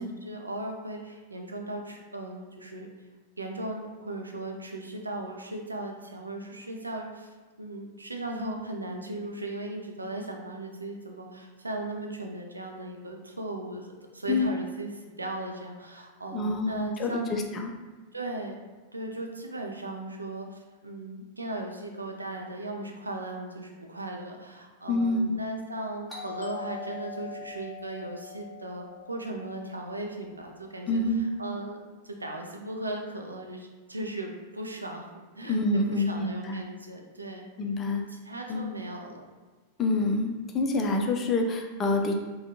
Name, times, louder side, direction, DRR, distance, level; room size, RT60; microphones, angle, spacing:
voice 1, 0.0-2.9 3.4-13.9 14.1-14.9 15.2-17.4 18.1-18.6 18.9-31.8 32.0-37.5 37.9-39.3, right 1 dB, 80° right, 2 dB, 0.4 m, -37 dB
voice 2, 16.3-17.7 24.9-25.4 30.9-31.2 35.5-36.6 37.6-38.0 38.5-38.6 39.8-42.1, left 2 dB, 25° left, 2 dB, 0.4 m, -27 dB
Doorbell, 26.1-30.7, left 4 dB, 5° right, 0.9 m, -42 dB
3.4 x 2.2 x 2.7 m, 1.4 s
figure-of-eight pair, 90°, 0 cm